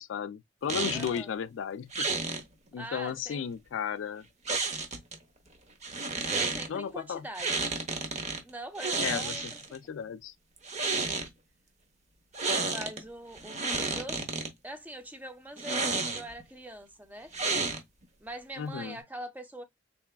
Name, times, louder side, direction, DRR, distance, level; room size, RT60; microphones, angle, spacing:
voice 1, 0.0-2.1 2.7-4.2 6.7-7.3 9.0-10.3 18.6-19.0, left 7 dB, 80° left, 0.4 m, -34 dB
sound 1, 0.7-1.2 1.9-2.4 4.5-5.2 5.8-6.7 7.4-8.4 8.8-9.8 10.6-11.3 12.3-13.0 13.4-14.5 15.6-16.4 17.3-18.0, right 3 dB, 40° right, 1.1 m, -31 dB
voice 2, 0.9-1.3 2.8-3.5 6.1-7.6 8.4-9.4 12.6-14.2 14.6-17.3 18.2-19.6, right 1 dB, 10° right, 0.8 m, -43 dB
4.6 x 3.4 x 2.2 m
head